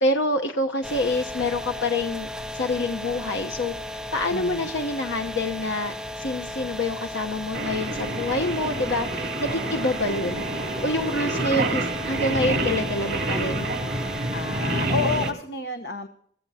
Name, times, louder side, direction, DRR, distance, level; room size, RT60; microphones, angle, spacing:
voice 1, 0.0-3.7 4.1-10.4 10.8-13.7, left 2 dB, 85° left, 3 dB, 1.0 m, -27 dB
sound 1, 0.8-15.3, left 1 dB, 5° right, 0.5 m, -35 dB
voice 2, 4.3-4.7 14.3-16.1, left 3 dB, 60° left, 6 dB, 1.1 m, -30 dB
Singing, 7.5-15.3, right 2 dB, 55° right, 3.3 m, -28 dB
24.5 x 15.0 x 2.8 m, 0.62 s
head